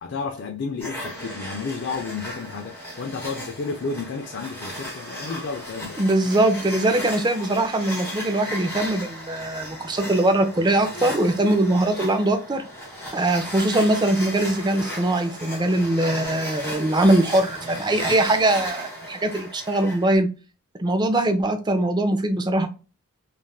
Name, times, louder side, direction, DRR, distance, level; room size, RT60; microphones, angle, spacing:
voice 1, 0.0-6.3, left 4 dB, 50° left, 0.4 m, -32 dB
sound 1, 0.8-20.2, equal, 10° left, 1.2 m, -35 dB
voice 2, 6.0-12.6 13.1-20.3 20.8-22.7, right 1 dB, 20° right, 0.4 m, -21 dB
3.3 x 2.4 x 2.3 m
head